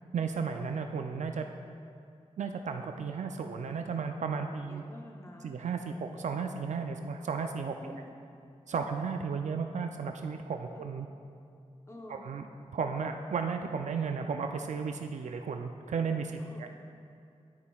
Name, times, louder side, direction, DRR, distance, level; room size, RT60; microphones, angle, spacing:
voice 1, 0.1-1.5 2.4-4.8 5.4-7.8 8.7-11.1 12.2-12.4 12.7-16.8, right 5 dB, 80° right, 5 dB, 0.4 m, -34 dB
voice 2, 4.3-5.5 7.8-8.2 8.7-8.9 10.7-10.9 11.9-12.3 16.4-16.8, left 1 dB, 25° left, 1 dB, 0.8 m, -49 dB
10.5 x 9.5 x 2.3 m, 2.4 s
cardioid pair, 55°, 12 cm